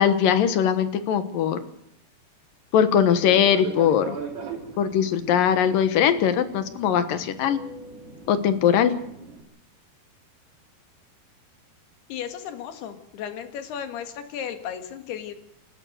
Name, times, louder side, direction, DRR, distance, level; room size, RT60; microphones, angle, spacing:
voice 1, 0.0-1.6 2.7-4.2 4.8-7.6 8.3-8.9, left 8 dB, 65° left, 11 dB, 2.7 m, -21 dB
Fixed-wing aircraft airplane, 3.0-9.4, right 5 dB, 75° right, 5.6 m, -39 dB
voice 2, 12.1-15.3, left 8 dB, 85° left, 7 dB, 3.8 m, -35 dB
29.0 x 13.0 x 8.0 m, 0.77 s
omnidirectional pair, 4.6 m